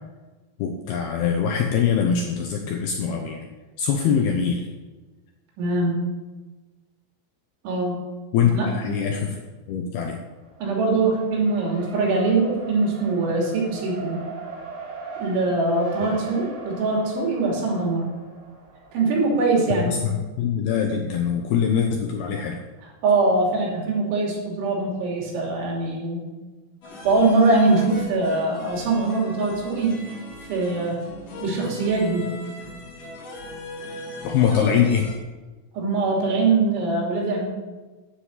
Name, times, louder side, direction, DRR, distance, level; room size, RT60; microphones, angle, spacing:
voice 1, 0.6-3.5 3.8-4.7 8.3-9.4 9.7-10.2 16.0-16.2 19.7-22.6 34.2-35.1, left 7 dB, 75° left, 3 dB, 2.4 m, -23 dB
voice 2, 5.6-6.0 7.7-8.0 8.5-8.7 10.6-14.2 15.2-18.1 18.9-20.0 23.0-26.3 27.1-30.0 30.5-31.0 31.4-32.3 35.7-37.4, right 3 dB, 75° right, -1 dB, 5.3 m, -22 dB
Race car auto racing, 10.3-19.4, right 3 dB, 55° right, 6.0 m, -39 dB
sound 1, 26.8-35.2, left 1 dB, 40° left, 3.1 m, -39 dB
10.5 x 8.4 x 8.1 m, 1.2 s
omnidirectional pair, 5.5 m